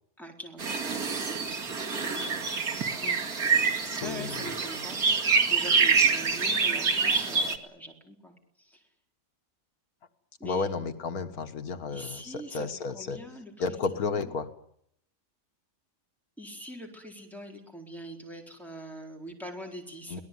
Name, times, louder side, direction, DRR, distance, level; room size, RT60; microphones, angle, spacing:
voice 1, 0.2-1.7 2.5-3.2 3.9-5.0 5.4-8.8 10.4-10.7 11.9-14.3 16.4-20.2, equal, ahead, 0 dB, 4.4 m, -43 dB
sound 1, 0.6-7.6, right 5 dB, 85° right, 2.5 m, -26 dB
voice 2, 3.8-4.3 10.4-13.2 13.6-14.5 20.1-20.2, left 4 dB, 90° left, 9 dB, 1.9 m, -32 dB
24.5 x 18.0 x 9.5 m, 0.72 s
omnidirectional pair, 1.5 m